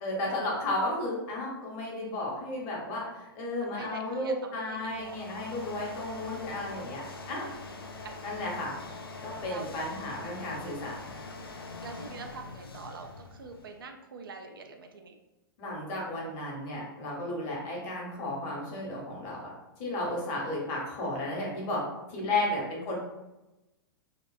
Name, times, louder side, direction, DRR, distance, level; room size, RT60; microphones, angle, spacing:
voice 1, 0.0-7.0 7.3-7.5 8.2-8.7 9.2-10.9 15.6-19.5 19.8-21.8 22.1-23.0, left 1 dB, 40° left, -3 dB, 0.9 m, -33 dB
voice 2, 3.6-5.2 8.0-8.2 9.4-9.8 11.8-15.2 17.3-17.7 22.2-22.4, right 4 dB, 70° right, 4 dB, 0.4 m, -45 dB
sound 1, 4.7-13.8, left 3 dB, 85° left, 0.4 m, -44 dB
2.8 x 2.0 x 2.3 m, 1.0 s
figure-of-eight pair, 110°, 12 cm